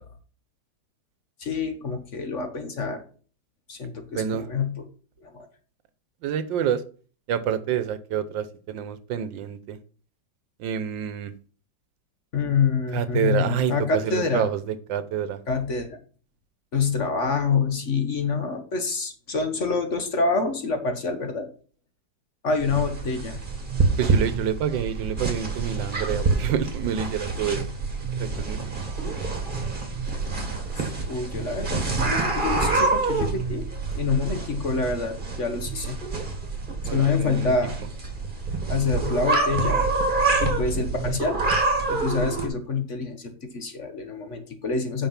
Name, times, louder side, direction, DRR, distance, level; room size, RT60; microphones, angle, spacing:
voice 1, 1.4-3.0 3.7-4.8 5.2-5.5 12.3-14.5 15.5-16.0 16.7-21.5 22.4-23.4 30.8-33.7 33.9-36.0 36.9-37.8 38.7-39.8 40.4-41.4 41.9-45.1, left 4 dB, 45° left, 1.3 m, -26 dB
voice 2, 4.1-4.5 6.2-6.8 7.3-9.8 10.6-11.3 12.9-13.7 14.0-15.4 24.0-27.7 28.2-28.6 36.9-37.5, right 8 dB, 80° right, 1.5 m, -28 dB
sound 1, 22.6-42.5, right 3 dB, 30° right, 1.7 m, -27 dB
8.9 x 5.5 x 5.8 m
omnidirectional pair, 2.0 m